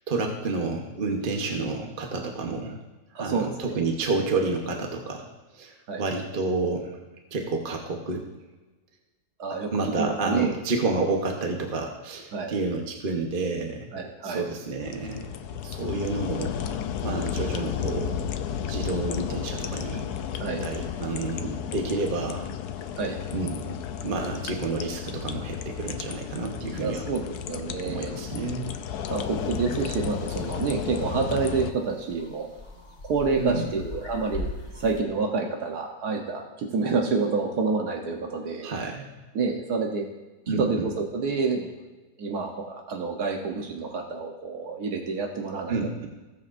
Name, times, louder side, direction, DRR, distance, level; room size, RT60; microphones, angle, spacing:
voice 1, 0.1-2.8 3.1-5.3 5.5-7.0 7.3-8.3 9.7-13.9 14.2-15.3 15.6-16.6 17.0-18.2 18.7-20.1 20.6-22.5 23.3-23.8 24.0-27.0 27.8-28.7 33.4-33.7 38.6-39.1 40.5-40.8 45.7-46.1, right 3 dB, 40° right, 2 dB, 1.1 m, -29 dB
voice 2, 3.1-3.8 5.9-6.1 9.4-9.7 10.0-10.6 12.3-12.6 13.9-14.5 20.4-20.6 23.0-23.2 26.8-28.1 29.1-32.5 33.0-38.7 39.3-40.0 40.5-41.7 42.2-45.8, right 4 dB, 80° right, 1 dB, 1.5 m, -28 dB
sound 1, 14.8-31.7, left 8 dB, 80° left, 1.2 m, -33 dB
sound 2, 29.1-35.0, left 2 dB, 50° left, 1.6 m, -41 dB
17.0 x 7.4 x 2.6 m, 1.2 s
omnidirectional pair, 1.7 m